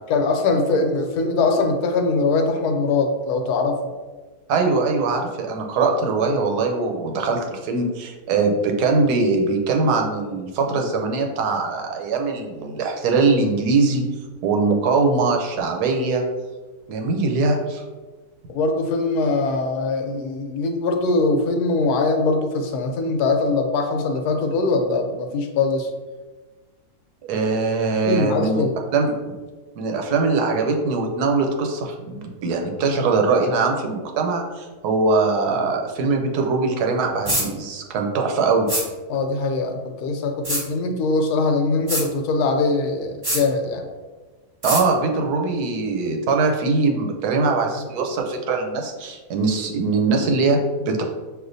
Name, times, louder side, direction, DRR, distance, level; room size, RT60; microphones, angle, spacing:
voice 1, 0.1-3.9 18.5-25.9 28.0-28.7 39.1-43.8, left 3 dB, 80° left, 4 dB, 1.2 m, -22 dB
voice 2, 4.5-14.0 14.4-16.2 16.9-17.8 27.3-28.6 28.9-29.4 29.8-38.7 44.6-51.0, right 3 dB, 90° right, 2 dB, 1.2 m, -22 dB
sound 1, 37.3-37.5 38.7-38.9 40.4-40.6 41.9-42.1 43.2-43.4 44.6-44.8, equal, 25° right, 1.0 m, -23 dB
6.3 x 2.4 x 2.6 m, 1.3 s
omnidirectional pair, 1.6 m